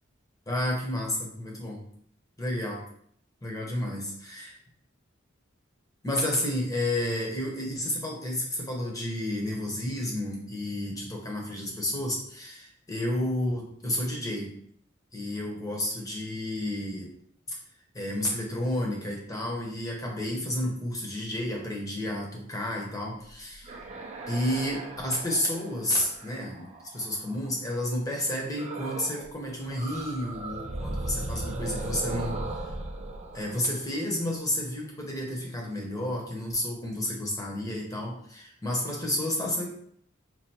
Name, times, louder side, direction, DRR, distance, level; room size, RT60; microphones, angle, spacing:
voice 1, 0.5-1.9 2.4-2.8 3.4-4.6 6.0-14.5 15.1-17.1 17.5-17.6 17.9-23.7 24.3-32.4 33.3-39.7, left 1 dB, 15° left, -1 dB, 0.8 m, -31 dB
sound 1, 23.5-27.5 28.6-29.3 29.6-34.5, right 2 dB, 35° right, 0.4 m, -37 dB
4.5 x 2.4 x 2.8 m, 0.66 s
head